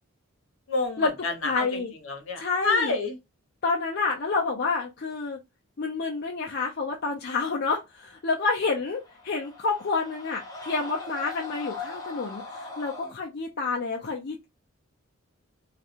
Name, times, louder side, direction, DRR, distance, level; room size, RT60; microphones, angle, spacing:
voice 1, 0.7-3.2, left 3 dB, 65° left, 1.0 m, -28 dB
voice 2, 1.4-1.9 2.4-2.9 3.6-5.4 5.8-14.4, left 4 dB, 50° left, 0.5 m, -29 dB
sound 1, 8.8-13.1, left 4 dB, 15° left, 0.9 m, -40 dB
3.1 x 2.4 x 2.5 m
head